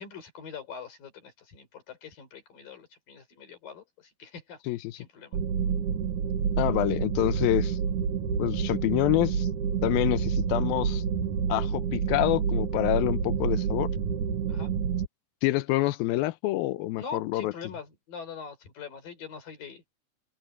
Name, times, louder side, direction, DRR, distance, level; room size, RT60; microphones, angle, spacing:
voice 1, 0.0-4.6 4.9-5.4 14.5-14.7 17.0-19.8, left 6 dB, 65° left, 6.2 m, -43 dB
sound 1, 5.3-15.1, right 6 dB, 60° right, 3.3 m, -28 dB
voice 2, 6.6-7.8 8.4-9.5 9.8-11.0 11.5-13.9 15.4-17.5, left 17 dB, 80° left, 2.6 m, -27 dB
open air
omnidirectional pair, 4.4 m